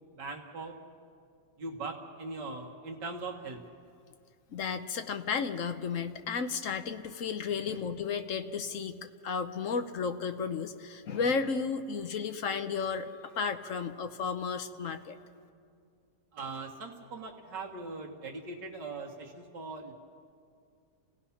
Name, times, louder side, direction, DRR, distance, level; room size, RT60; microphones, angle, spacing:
voice 1, 0.2-0.8 1.6-3.6 7.6-7.8 14.8-15.0 16.3-19.9, right 3 dB, 85° right, 0 dB, 2.1 m, -40 dB
voice 2, 4.5-13.1 13.4-15.2, left 5 dB, 55° left, 9 dB, 1.1 m, -33 dB
29.0 x 17.5 x 5.7 m, 2.3 s
omnidirectional pair, 1.8 m